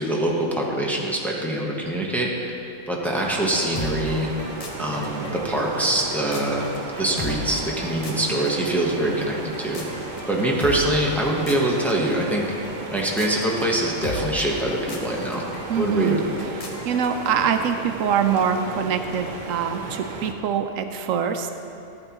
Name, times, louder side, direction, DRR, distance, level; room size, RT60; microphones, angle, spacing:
voice 1, 0.0-2.5 2.9-4.3 4.8-6.6 7.0-12.5 12.9-15.4 15.8-16.2, right 1 dB, ahead, -3 dB, 0.9 m, -24 dB
sound 1, 3.1-20.3, right 3 dB, 45° right, 0.7 m, -35 dB
sound 2, 3.7-17.5, left 1 dB, 35° left, 0.7 m, -37 dB
voice 2, 15.7-16.2 16.6-21.5, right 7 dB, 85° right, 7 dB, 1.0 m, -24 dB
12.5 x 8.8 x 3.0 m, 2.7 s
omnidirectional pair, 1.3 m